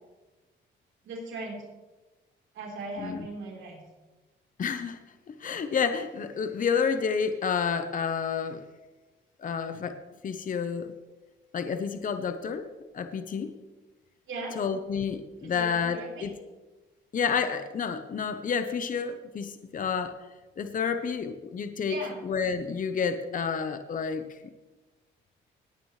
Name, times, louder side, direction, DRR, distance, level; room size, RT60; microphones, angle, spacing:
voice 1, 1.0-1.6 2.5-3.8 14.3-14.6 15.4-16.4 21.9-22.2, right 2 dB, 75° right, -2 dB, 3.9 m, -38 dB
voice 2, 4.6-5.0 5.3-8.6 9.4-10.0 10.2-10.9 11.5-12.7 12.9-13.5 14.6-16.3 17.1-20.2 20.6-22.0 22.2-24.4, left 6 dB, 45° left, 8 dB, 0.9 m, -30 dB
19.0 x 9.4 x 3.2 m, 1.2 s
cardioid pair, 90°, 20 cm